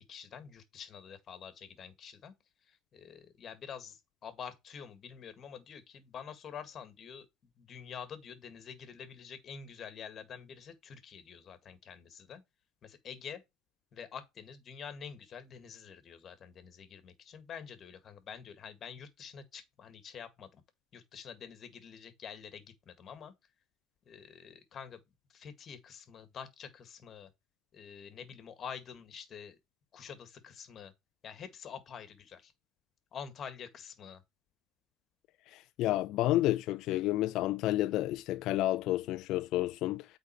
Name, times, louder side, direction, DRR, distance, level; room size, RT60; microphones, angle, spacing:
voice 1, 0.0-2.4 2.7-7.3 7.6-12.4 12.8-13.4 13.9-20.6 20.9-23.3 24.1-25.0 25.3-27.3 27.7-29.6 29.9-30.9 31.2-32.5 33.1-34.2, left 7 dB, 40° left, 1.9 m, -47 dB
voice 2, 35.5-40.1, left 15 dB, 60° left, 0.4 m, -30 dB
8.3 x 4.0 x 4.5 m
supercardioid pair, 105°, 0 cm